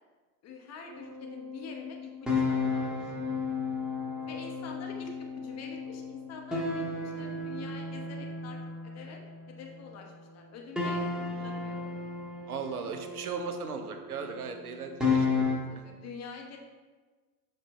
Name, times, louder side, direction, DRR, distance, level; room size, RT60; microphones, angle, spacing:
voice 1, 0.4-3.1 4.3-8.6 8.8-9.2 9.5-11.9 15.7-16.6, left 4 dB, 35° left, 1 dB, 1.2 m, -46 dB
sound 1, 0.9-10.2 10.8-15.6, left 4 dB, ahead, 1.5 m, -33 dB
voice 2, 12.5-15.5 15.7-15.8, right 5 dB, 80° right, 6 dB, 0.7 m, -37 dB
7.5 x 3.2 x 4.2 m, 1.4 s
figure-of-eight pair, 75°, 44 cm